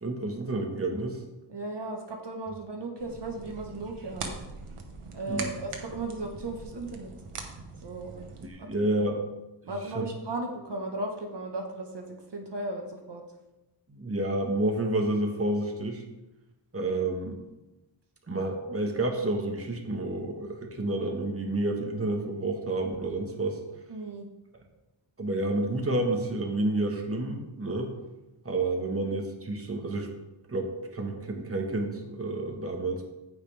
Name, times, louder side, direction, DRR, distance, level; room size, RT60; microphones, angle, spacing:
voice 1, 0.0-1.2 5.3-5.5 8.4-9.2 9.9-10.1 13.9-16.0 16.7-17.4 18.3-23.6 25.2-27.9 28.4-30.1 30.5-33.0, right 2 dB, 25° right, 3 dB, 1.4 m, -29 dB
voice 2, 1.5-4.4 5.1-7.1 7.8-8.3 8.6-8.8 9.6-13.2 23.9-24.3, right 2 dB, 55° right, 2 dB, 1.4 m, -36 dB
sound 1, 3.0-8.5, right 4 dB, 85° right, 1.2 m, -42 dB
15.0 x 5.4 x 3.5 m, 1.0 s
cardioid pair, 65°, 50 cm